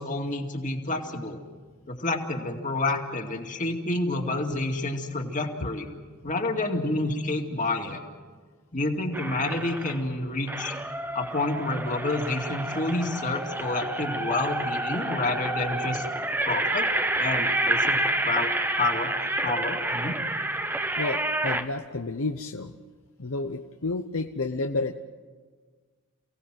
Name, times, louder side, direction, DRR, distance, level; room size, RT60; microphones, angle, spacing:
voice 1, 0.0-1.4 1.9-5.9 6.2-8.0 8.7-10.8 11.1-16.1 16.4-16.9 17.2-18.5 18.8-19.1 19.4-20.1, left 2 dB, 35° left, 3 dB, 2.4 m, -29 dB
sound 1, 9.1-10.0 10.5-21.7, right 1 dB, 10° right, 0.9 m, -29 dB
voice 2, 21.0-22.7 23.2-24.9, left 3 dB, 65° left, 5 dB, 0.8 m, -30 dB
29.0 x 17.5 x 7.6 m, 1.5 s
head